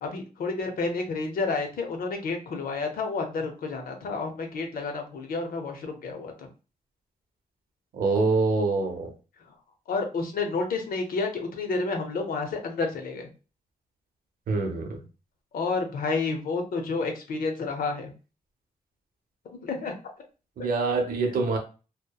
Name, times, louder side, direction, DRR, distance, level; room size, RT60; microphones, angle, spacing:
voice 1, 0.0-6.5 9.9-13.3 15.5-18.1 19.6-19.9, left 4 dB, 85° left, 4 dB, 0.6 m, -30 dB
voice 2, 7.9-9.1 14.5-15.0 20.6-21.6, right 3 dB, 85° right, 2 dB, 0.7 m, -25 dB
2.8 x 2.1 x 2.2 m, 0.33 s
wide cardioid pair, 165°, 15 cm